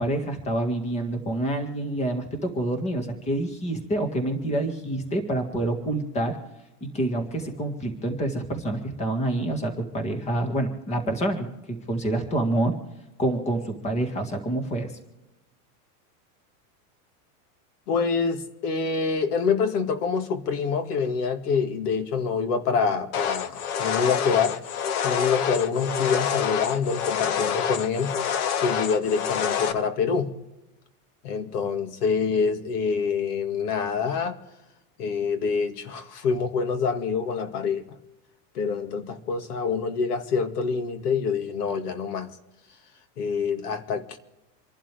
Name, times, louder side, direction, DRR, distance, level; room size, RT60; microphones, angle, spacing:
voice 1, 0.0-6.4 6.8-12.8 13.2-14.9, right 1 dB, 15° left, 5 dB, 1.9 m, -27 dB
voice 2, 17.9-24.6 25.0-28.2 28.6-30.3 31.2-34.4 35.0-37.8 38.5-42.3 43.2-44.2, left 5 dB, 80° left, 7 dB, 2.2 m, -26 dB
sound 1, 23.1-29.7, left 8 dB, 65° left, 1.4 m, -27 dB
27.5 x 11.5 x 3.5 m, 1.0 s
supercardioid pair, 165°, 45 cm